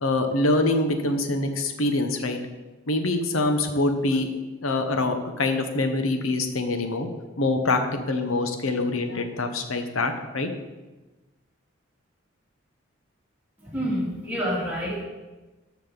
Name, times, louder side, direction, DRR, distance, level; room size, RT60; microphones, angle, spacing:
voice 1, 0.0-2.4 2.9-7.1 7.4-7.8 8.1-10.5, left 2 dB, 90° left, 6 dB, 1.0 m, -25 dB
voice 2, 13.6-15.0, equal, 10° right, -6 dB, 2.2 m, -28 dB
13.0 x 5.2 x 4.0 m, 1.2 s
head